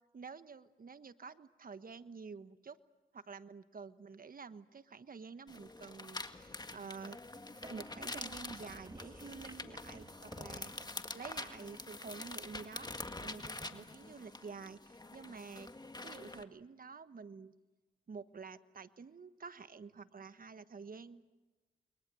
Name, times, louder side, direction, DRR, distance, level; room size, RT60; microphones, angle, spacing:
voice 1, 0.1-2.8 3.1-7.2 7.6-10.7 11.1-12.9 13.2-15.7 16.0-17.5 18.1-21.2, right 5 dB, 50° right, 12 dB, 1.3 m, -49 dB
sound 1, 5.5-16.4, left 2 dB, 20° left, 1.8 m, -46 dB
sound 2, 7.5-12.9, right 2 dB, 20° right, 1.6 m, -57 dB
29.5 x 22.0 x 7.8 m, 1.2 s
cardioid pair, 50°, 19 cm